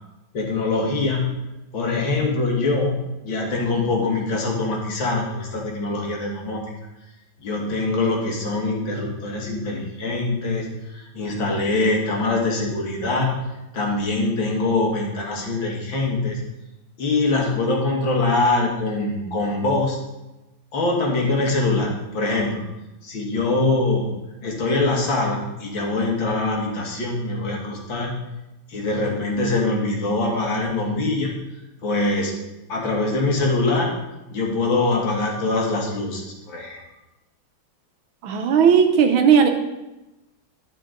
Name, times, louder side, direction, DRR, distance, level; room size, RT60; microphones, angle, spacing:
voice 1, 0.3-1.3 1.7-3.0 3.2-6.6 7.4-13.4 13.7-16.4 17.0-20.0 20.7-22.6 23.0-24.1 24.4-28.2 28.7-31.4 31.8-32.3 32.7-33.9 34.3-36.8, left 2 dB, 70° left, -1 dB, 2.3 m, -23 dB
voice 2, 38.2-39.5, right 7 dB, 90° right, 5 dB, 1.7 m, -16 dB
11.0 x 6.1 x 3.8 m, 1.0 s
omnidirectional pair, 2.2 m